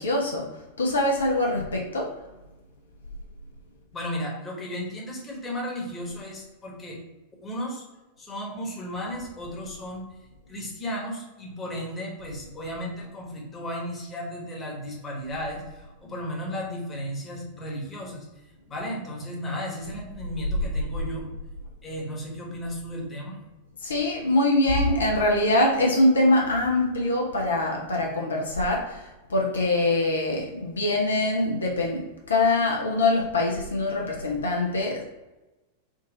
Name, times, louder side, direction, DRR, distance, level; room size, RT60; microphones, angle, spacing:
voice 1, 0.0-2.1 23.8-35.0, left 2 dB, 70° left, -1 dB, 0.6 m, -24 dB
voice 2, 3.9-7.0 7.4-7.8 8.2-10.0 10.5-18.3 18.7-21.3 21.8-23.4, equal, 20° left, -1 dB, 1.1 m, -34 dB
3.8 x 2.5 x 3.8 m, 1.1 s
figure-of-eight pair, 90°, 0 cm